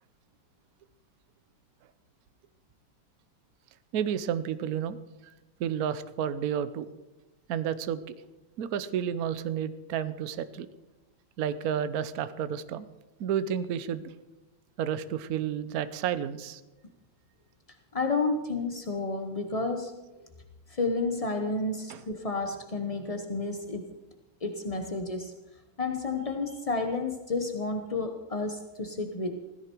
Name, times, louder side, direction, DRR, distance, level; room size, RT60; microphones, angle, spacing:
voice 1, 3.9-5.0 5.6-6.9 7.5-8.0 8.6-10.7 11.4-12.9 13.2-14.1 14.8-16.6 21.9-22.0, right 9 dB, 60° right, 13 dB, 1.0 m, -31 dB
voice 2, 17.9-19.9 20.2-20.3 20.7-23.8 24.4-25.3 25.8-29.4, left 3 dB, 45° left, 5 dB, 0.4 m, -31 dB
16.5 x 15.0 x 4.6 m, 1.1 s
omnidirectional pair, 2.3 m